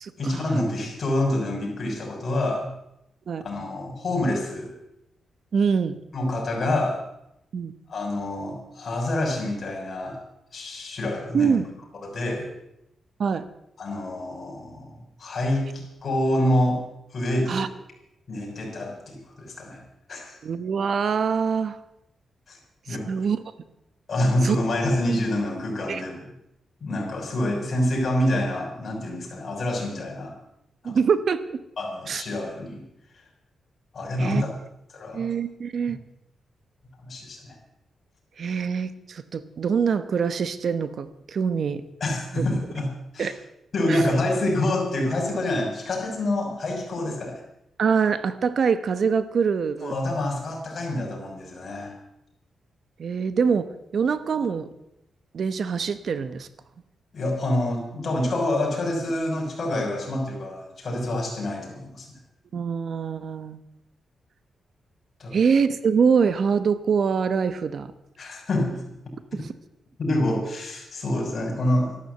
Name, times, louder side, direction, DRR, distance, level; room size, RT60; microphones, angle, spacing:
voice 1, 0.2-2.7 3.4-4.8 6.1-7.0 7.9-10.2 10.5-11.6 11.9-12.5 13.8-16.8 17.1-17.7 18.3-19.8 20.1-20.4 22.5-22.6 22.9-23.1 24.1-26.3 26.8-30.4 30.8-31.0 31.8-32.8 33.9-34.5 34.9-35.3 37.0-37.6 42.0-43.3 43.7-47.4 49.8-51.9 57.1-62.1 65.2-65.4 68.2-68.8 70.0-72.0, left 1 dB, 45° left, 0 dB, 6.2 m, -27 dB
voice 2, 5.5-6.0 7.5-7.7 11.3-11.6 13.2-13.5 17.5-17.7 20.4-21.8 23.1-23.4 24.4-24.6 25.9-26.0 30.8-31.6 32.1-32.2 34.2-34.4 35.1-36.0 38.4-41.8 42.3-42.4 43.2-43.3 43.9-44.0 47.8-49.9 53.0-54.7 55.3-56.5 62.5-63.6 65.3-67.9, right 6 dB, 60° right, 13 dB, 1.0 m, -24 dB
14.0 x 12.0 x 8.1 m, 0.83 s
cardioid pair, 115°, 0 cm